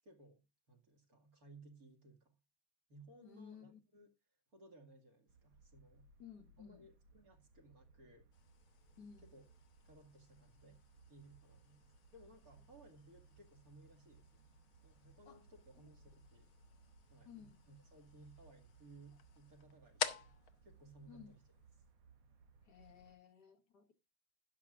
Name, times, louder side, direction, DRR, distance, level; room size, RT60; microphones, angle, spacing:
voice 1, 0.0-2.4 2.9-4.1 4.5-6.1 6.6-8.3 9.2-9.4 9.8-10.8 11.1-14.5 14.8-16.5 17.1-20.3 20.6-21.4, right 2 dB, 45° right, 2.6 m, -61 dB
voice 2, 3.2-3.8 6.2-6.9 9.0-9.3 15.3-15.4 17.3-17.6 21.1-21.4 22.6-23.9, left 7 dB, 55° left, 1.8 m, -56 dB
sound 1, 5.3-23.2, right 4 dB, 85° right, 2.3 m, -65 dB
sound 2, 8.3-21.9, left 8 dB, 80° left, 2.0 m, -51 dB
13.0 x 10.5 x 2.5 m
omnidirectional pair, 2.2 m